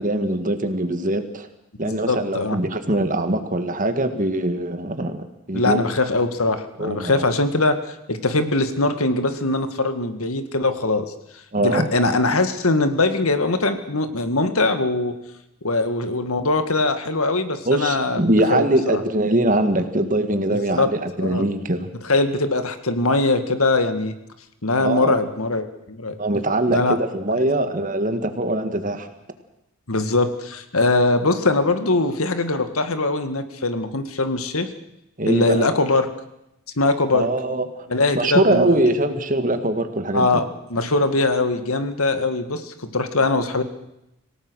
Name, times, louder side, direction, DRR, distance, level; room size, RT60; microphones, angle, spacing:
voice 1, 0.0-1.5 1.8-5.9 6.8-7.2 11.5-11.9 17.7-21.9 24.8-25.2 26.2-29.1 35.2-35.7 37.1-37.7 38.1-40.4, right 1 dB, 35° right, 8 dB, 1.9 m, -22 dB
voice 2, 1.8-2.6 5.5-11.1 11.6-15.1 15.6-18.2 18.5-19.0 20.5-20.9 21.2-21.4 22.0-24.1 24.6-26.2 26.7-27.0 29.9-34.7 35.2-36.1 36.8-37.3 37.9-38.8 40.1-40.4 40.7-43.6, left 2 dB, 75° left, 9 dB, 2.0 m, -21 dB
27.0 x 17.5 x 6.4 m, 0.85 s
head